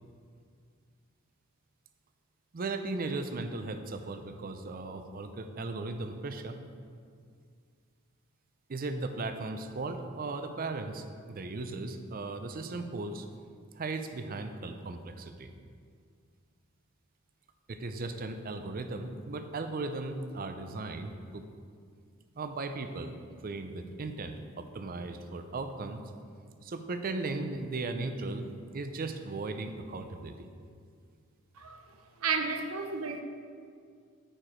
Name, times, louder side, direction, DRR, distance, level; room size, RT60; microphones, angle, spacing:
voice 1, 2.5-6.6 8.7-13.2 13.8-15.5 17.7-21.4 22.4-23.1 23.4-26.0 26.6-30.5, right 3 dB, 40° right, 8 dB, 0.5 m, -37 dB
voice 2, 32.2-33.2, right 5 dB, 80° right, 5 dB, 0.8 m, -32 dB
8.8 x 4.7 x 5.0 m, 2.2 s
head